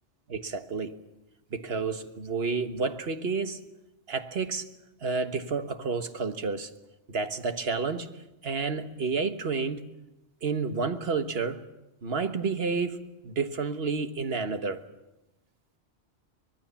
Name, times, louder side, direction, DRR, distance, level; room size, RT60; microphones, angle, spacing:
voice 1, 0.3-0.9 1.5-3.6 4.1-4.7 5.0-6.7 7.1-9.9 10.4-11.6 12.0-14.8, right 4 dB, 65° right, 1.5 m, -30 dB
24.5 x 20.5 x 7.1 m
omnidirectional pair, 1.1 m